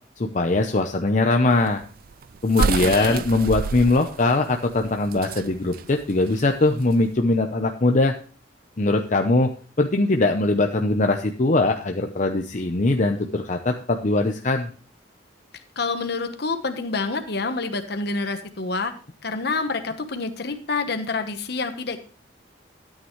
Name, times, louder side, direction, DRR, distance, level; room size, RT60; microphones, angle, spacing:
voice 1, 0.2-1.8 2.4-8.1 8.8-9.5 9.8-14.7, left 2 dB, 45° left, 4 dB, 0.7 m, -21 dB
sound 1, 1.5-7.1, right 5 dB, 50° right, 0.4 m, -29 dB
voice 2, 2.6-3.2 15.8-18.9 19.2-22.0, left 3 dB, 60° left, 7 dB, 1.1 m, -27 dB
13.0 x 8.9 x 3.1 m, 0.39 s
head